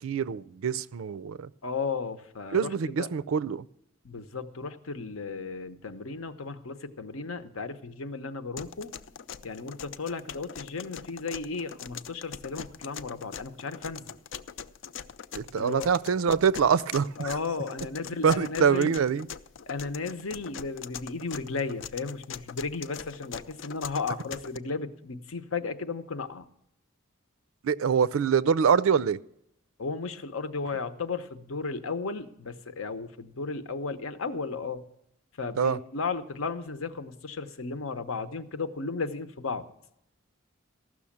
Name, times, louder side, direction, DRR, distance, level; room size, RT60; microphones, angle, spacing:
voice 1, 0.0-1.5 2.5-3.6 15.3-17.3 18.2-19.3 27.6-29.2 35.6-35.8, right 6 dB, 85° right, 0.4 m, -25 dB
voice 2, 1.6-3.1 4.0-8.9 9.4-14.1 15.5-15.9 17.2-19.0 19.7-26.4 29.8-34.8 35.4-39.7, left 4 dB, 85° left, 0.9 m, -34 dB
sound 1, 8.6-24.6, left 7 dB, 65° left, 0.4 m, -42 dB
14.5 x 6.2 x 8.6 m
head